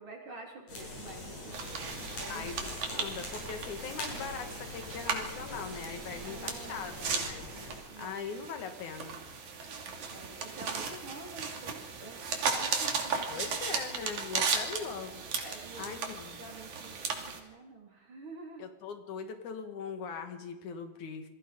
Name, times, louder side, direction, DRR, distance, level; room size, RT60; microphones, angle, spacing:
voice 1, 0.0-2.6 2.9-3.2 3.9-4.2 6.2-6.8 7.9-8.2 10.1-13.6 15.4-18.7, right 3 dB, 45° right, 1 dB, 4.6 m, -48 dB
sound 1, 0.7-7.8, left 2 dB, 70° left, 9.2 m, -43 dB
sound 2, 1.5-17.4, right 5 dB, 85° right, 4.1 m, -36 dB
voice 2, 2.3-7.5 8.0-9.2 13.3-15.2 15.8-16.5 18.6-21.3, left 6 dB, 85° left, 7 dB, 3.5 m, -41 dB
27.5 x 21.5 x 5.4 m, 1.0 s
omnidirectional pair, 3.3 m